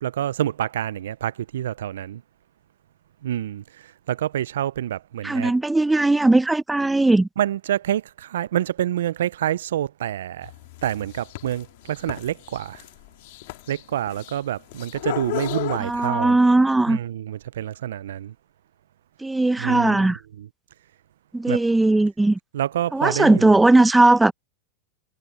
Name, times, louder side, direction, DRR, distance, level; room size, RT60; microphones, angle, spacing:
voice 1, 0.0-2.2 3.2-5.5 7.4-10.5 10.8-12.8 13.7-16.4 16.9-18.3 19.6-20.1 20.4-20.5 21.5-21.6 22.5-23.6, right 11 dB, 80° right, 0.4 m, -27 dB
voice 2, 5.2-7.3 15.8-17.0 19.2-20.2 21.3-22.4 22.9-24.3, right 2 dB, 5° right, 0.6 m, -18 dB
sound 1, 10.4-16.1, left 20 dB, 65° left, 1.7 m, -34 dB
hypercardioid pair, 115°, 0 cm